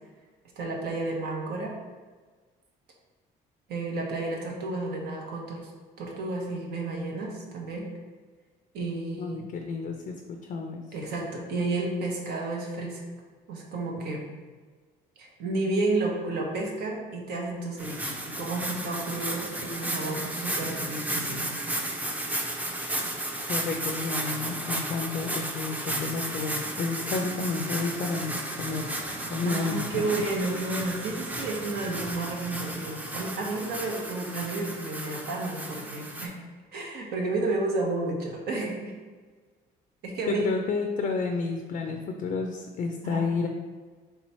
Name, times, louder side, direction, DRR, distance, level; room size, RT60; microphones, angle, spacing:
voice 1, 0.6-1.7 3.7-5.7 6.0-7.9 8.7-9.5 10.9-13.0 13.5-14.2 15.2-21.5 29.4-36.3 36.7-38.9 40.0-40.5 43.0-43.2, right 2 dB, 70° right, -1 dB, 0.9 m, -31 dB
voice 2, 9.2-10.8 23.5-28.9 29.3-30.2 40.3-43.5, left 4 dB, 50° left, 4 dB, 0.4 m, -31 dB
sound 1, 17.8-36.3, right 1 dB, 10° right, 0.5 m, -34 dB
3.4 x 3.0 x 4.2 m, 1.4 s
cardioid pair, 110°, 17 cm